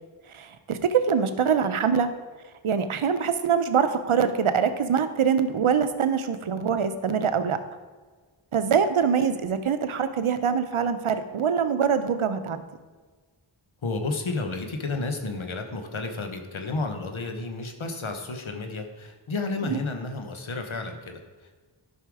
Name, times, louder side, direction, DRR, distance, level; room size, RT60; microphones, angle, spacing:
voice 1, 0.3-2.1 2.6-7.6 8.5-12.6 19.7-19.8, right 7 dB, 90° right, 10 dB, 0.8 m, -24 dB
voice 2, 13.8-21.6, left 3 dB, 75° left, 5 dB, 1.3 m, -32 dB
11.5 x 5.7 x 4.8 m, 1.4 s
wide cardioid pair, 45°, 48 cm